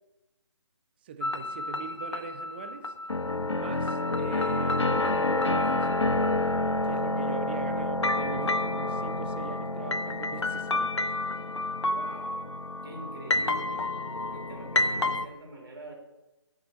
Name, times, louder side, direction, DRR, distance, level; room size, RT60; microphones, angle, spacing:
voice 1, 1.0-2.9 3.5-6.1 6.8-11.0, right 6 dB, 20° right, 8 dB, 0.6 m, -41 dB
sound 1, 1.2-15.3, left 2 dB, 75° left, 0.8 m, -29 dB
voice 2, 11.9-12.5 12.8-13.9 14.3-15.9, right 1 dB, 55° right, 0 dB, 3.5 m, -44 dB
7.5 x 6.2 x 7.6 m, 1.0 s
figure-of-eight pair, 150°, 15 cm